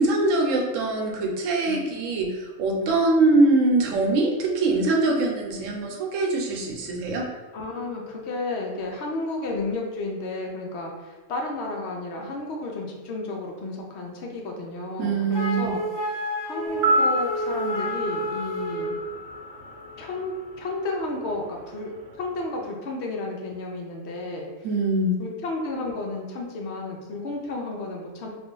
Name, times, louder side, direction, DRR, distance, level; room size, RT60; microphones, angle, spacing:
voice 1, 0.0-7.3 15.0-15.7 24.6-25.2, right 2 dB, 85° right, 1 dB, 1.0 m, -23 dB
voice 2, 7.5-19.0 20.0-24.4 25.2-28.3, left 2 dB, 65° left, 0 dB, 0.8 m, -32 dB
Wind instrument woodwind instrument, 15.3-19.0, equal, 25° right, 0.8 m, -30 dB
sound 1, 16.7-20.9 21.1-21.2, right 1 dB, 65° right, 0.8 m, -28 dB
2.5 x 2.4 x 3.7 m, 1.3 s
omnidirectional pair, 1.3 m